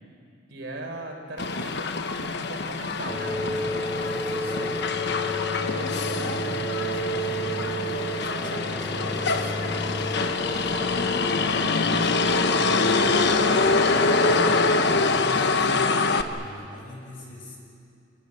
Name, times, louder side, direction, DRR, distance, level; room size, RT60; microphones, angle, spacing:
voice 1, 0.5-7.9 8.2-12.4, right 1 dB, 65° right, 2 dB, 4.3 m, -40 dB
Motor vehicle (road), 1.4-16.2, left 4 dB, 65° left, 1.2 m, -25 dB
sound 1, 3.1-15.0, equal, 15° left, 2.1 m, -31 dB
voice 2, 15.2-17.6, left 1 dB, 85° left, -1 dB, 7.2 m, -41 dB
27.5 x 18.5 x 9.8 m, 2.5 s
head